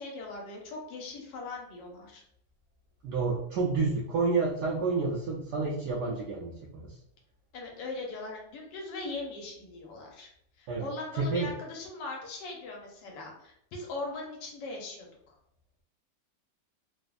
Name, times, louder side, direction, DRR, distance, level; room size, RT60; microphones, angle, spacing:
voice 1, 0.0-2.2 6.0-6.3 7.5-10.3 10.6-15.3, left 2 dB, 80° left, 0 dB, 1.3 m, -40 dB
voice 2, 3.0-6.5 6.8-7.0 10.7-10.9 11.2-11.5, right 4 dB, 75° right, -4 dB, 1.1 m, -29 dB
3.3 x 2.0 x 2.3 m, 0.72 s
omnidirectional pair, 1.9 m